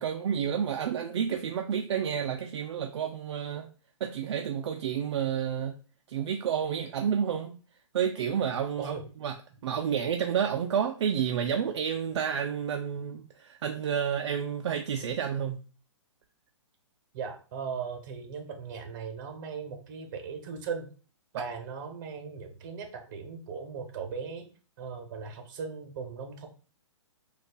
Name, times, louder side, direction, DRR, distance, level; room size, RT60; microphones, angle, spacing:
voice 1, 0.0-3.7 4.0-5.7 6.1-7.6 7.9-8.9 9.2-9.4 9.6-15.6, right 8 dB, 60° right, 0.4 m, -30 dB
voice 2, 17.1-20.9 21.3-24.5 24.8-26.5, right 6 dB, 40° right, 0.8 m, -38 dB
5.1 x 2.3 x 2.3 m
hypercardioid pair, 145°, 16 cm